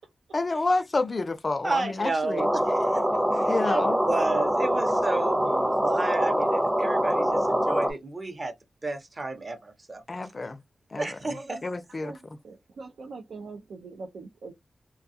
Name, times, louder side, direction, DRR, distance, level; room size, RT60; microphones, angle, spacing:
voice 1, 0.3-2.5 3.4-4.0 10.1-10.6 10.9-11.2 11.6-12.1, left 3 dB, 40° left, 0.4 m, -29 dB
voice 2, 1.6-3.0 3.3-8.5 8.8-10.0 11.0-11.6, right 2 dB, 40° right, 0.7 m, -32 dB
sound 1, 2.4-7.9, equal, 5° right, 0.6 m, -24 dB
voice 3, 11.3-11.6 12.0-14.5, right 3 dB, 90° right, 0.5 m, -42 dB
2.3 x 2.3 x 2.7 m
wide cardioid pair, 80°, 0 cm